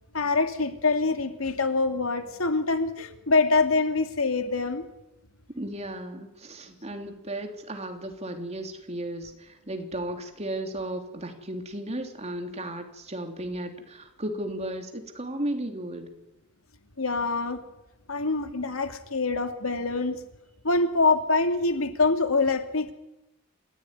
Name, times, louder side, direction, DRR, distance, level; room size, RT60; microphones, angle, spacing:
voice 1, 0.1-4.9 17.0-17.6 18.1-20.2 20.6-22.9, left 3 dB, 90° left, 7 dB, 2.4 m, -25 dB
voice 2, 5.5-16.1, right 1 dB, 30° right, 5 dB, 3.4 m, -35 dB
28.0 x 15.5 x 10.0 m, 0.95 s
head